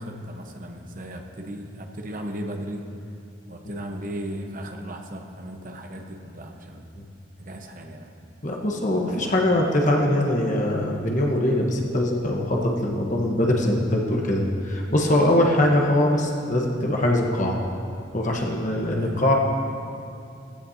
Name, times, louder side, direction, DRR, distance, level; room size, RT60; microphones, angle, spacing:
voice 1, 0.0-2.8 3.5-6.9 7.4-8.1 9.0-9.3 18.9-19.2, right 1 dB, 45° right, 3 dB, 1.1 m, -36 dB
voice 2, 8.4-17.6 18.1-19.3, left 1 dB, 45° left, 0 dB, 1.2 m, -22 dB
16.0 x 15.0 x 2.8 m, 2.5 s
head